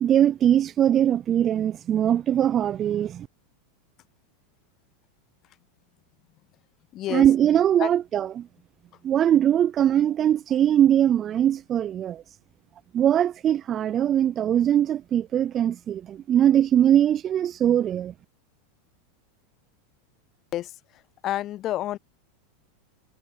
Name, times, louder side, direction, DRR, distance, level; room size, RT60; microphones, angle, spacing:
voice 1, 0.0-3.3 7.1-8.5 9.0-12.2 12.9-18.1, right 10 dB, 35° right, 0.3 m, -21 dB
voice 2, 6.9-7.2 7.8-7.9 20.5-20.7 21.2-22.0, left 14 dB, 40° left, 0.4 m, -28 dB
hypercardioid pair, 100°, 0 cm